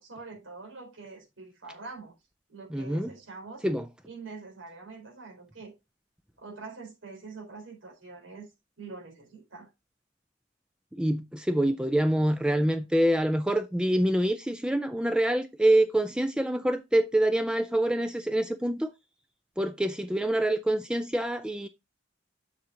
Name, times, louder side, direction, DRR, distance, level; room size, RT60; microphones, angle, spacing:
voice 1, 0.0-2.1 2.5-3.7 4.0-5.7 6.4-8.5 8.8-9.7, right 4 dB, 85° right, 4.2 m, -44 dB
voice 2, 2.7-3.1 3.6-3.9 11.0-18.9 19.6-21.7, right 1 dB, 5° right, 0.4 m, -26 dB
7.0 x 6.3 x 3.8 m
head